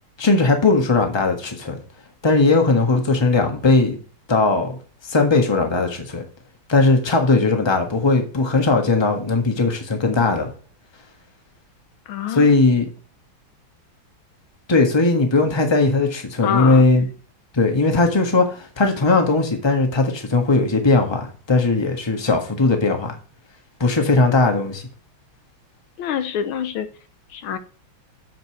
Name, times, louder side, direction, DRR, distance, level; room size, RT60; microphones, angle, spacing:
voice 1, 0.2-1.8 2.2-4.0 4.3-4.8 5.1-6.2 6.7-10.5 12.3-12.9 14.7-17.1 17.5-23.1 23.8-24.8, left 3 dB, 15° left, 1.3 m, -18 dB
voice 2, 12.1-12.5 15.1-15.2 16.4-16.8 26.0-26.9 27.3-27.6, left 8 dB, 75° left, 1.6 m, -25 dB
7.6 x 5.3 x 6.3 m
omnidirectional pair, 2.3 m